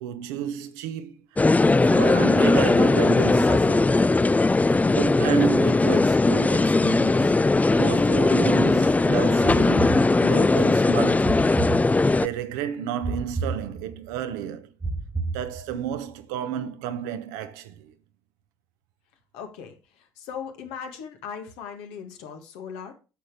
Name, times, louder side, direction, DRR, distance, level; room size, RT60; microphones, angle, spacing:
voice 1, 0.0-1.2 1.6-4.1 4.5-7.4 7.7-11.5 12.2-14.7 15.3-17.9, right 9 dB, 80° right, 0.9 m, -31 dB
sound 1, 1.4-12.3, left 3 dB, 15° left, 0.4 m, -19 dB
sound 2, 9.4-10.6 11.2-12.4 13.0-14.2 14.8-16.0, right 3 dB, 20° right, 1.2 m, -31 dB
voice 2, 19.3-22.9, left 7 dB, 75° left, 1.8 m, -38 dB
9.1 x 6.5 x 4.9 m
hypercardioid pair, 55°, 10 cm